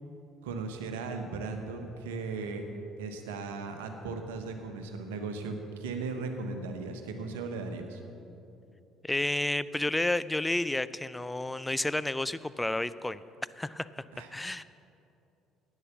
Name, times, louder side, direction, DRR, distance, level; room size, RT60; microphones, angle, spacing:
voice 1, 0.4-2.6 3.0-8.0 14.1-14.3, right 4 dB, 75° right, 6 dB, 1.1 m, -37 dB
voice 2, 9.0-13.2 13.6-14.6, left 2 dB, 10° left, 16 dB, 0.4 m, -31 dB
11.0 x 9.1 x 7.1 m, 2.7 s
figure-of-eight pair, 55°, 0 cm